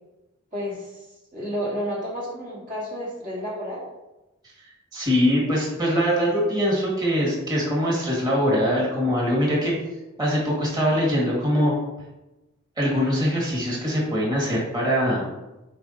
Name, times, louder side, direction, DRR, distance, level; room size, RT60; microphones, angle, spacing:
voice 1, 0.5-3.9, equal, 40° right, -6 dB, 1.7 m, -31 dB
voice 2, 4.9-9.7 10.2-11.7 12.8-15.2, equal, 20° right, -5 dB, 2.0 m, -22 dB
9.8 x 4.8 x 2.9 m, 1.0 s
head